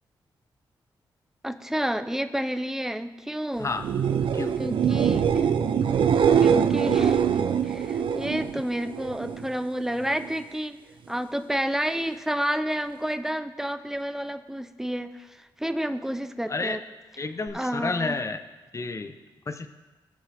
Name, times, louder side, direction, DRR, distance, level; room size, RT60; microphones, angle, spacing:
voice 1, 1.4-3.7 4.6-5.5 6.4-10.8 11.1-16.8 17.5-18.2, equal, 5° right, 10 dB, 0.7 m, -30 dB
sound 1, 3.7-9.5 9.8-10.4 17.5-17.6, right 7 dB, 70° right, 0.6 m, -23 dB
voice 2, 17.2-18.4 18.7-19.2 19.5-19.7, left 3 dB, 35° left, 8 dB, 0.9 m, -30 dB
18.5 x 6.5 x 3.6 m, 1.2 s
cardioid pair, 65°, 9 cm